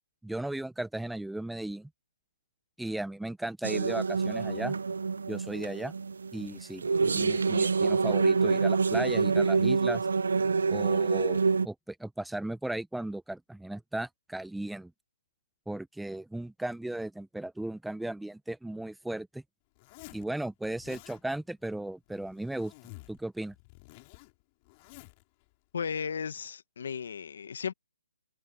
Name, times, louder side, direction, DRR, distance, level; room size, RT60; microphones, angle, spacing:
voice 1, 0.2-1.9 2.8-4.8 5.3-5.9 6.3-10.1 10.7-14.9 15.7-19.4 20.1-22.7 23.1-23.5, right 1 dB, ahead, 1.1 m, -36 dB
sound 1, 3.6-11.7, right 4 dB, 75° right, 0.9 m, -26 dB
Zipper (clothing), 19.8-20.3 20.6-21.2 22.1-23.2 23.5-25.2, left 26 dB, 25° left, 4.4 m, -51 dB
voice 2, 25.7-27.7, left 6 dB, 60° left, 1.6 m, -35 dB
hypercardioid pair, 155°, 0 cm